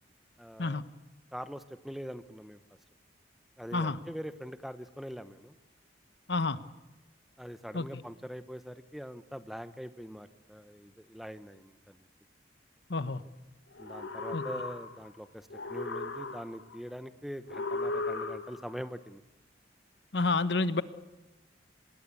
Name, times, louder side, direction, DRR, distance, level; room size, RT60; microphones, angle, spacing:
voice 1, 0.4-0.8 1.3-2.6 3.6-5.5 7.4-12.1 13.8-19.2, equal, ahead, 12 dB, 0.9 m, -43 dB
voice 2, 6.3-6.6 7.7-8.0 12.9-13.2 14.3-14.4 20.1-20.8, left 3 dB, 65° left, 14 dB, 1.1 m, -29 dB
sound 1, 13.7-15.2 15.5-16.8 17.5-18.8, left 3 dB, 85° left, 2.3 m, -36 dB
26.0 x 20.5 x 8.5 m, 1.0 s
head